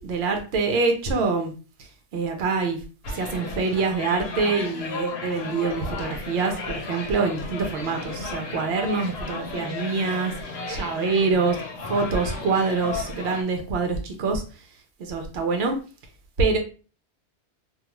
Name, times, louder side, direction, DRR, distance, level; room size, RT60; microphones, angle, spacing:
voice 1, 0.0-1.5 2.1-2.8 3.1-10.3 10.7-11.6 11.9-14.4 15.0-15.8 16.4-16.6, right 4 dB, 70° right, 4 dB, 0.9 m, -25 dB
sound 1, 3.0-13.4, left 3 dB, 70° left, 0.8 m, -34 dB
2.4 x 2.3 x 2.9 m, 0.36 s
omnidirectional pair, 1.1 m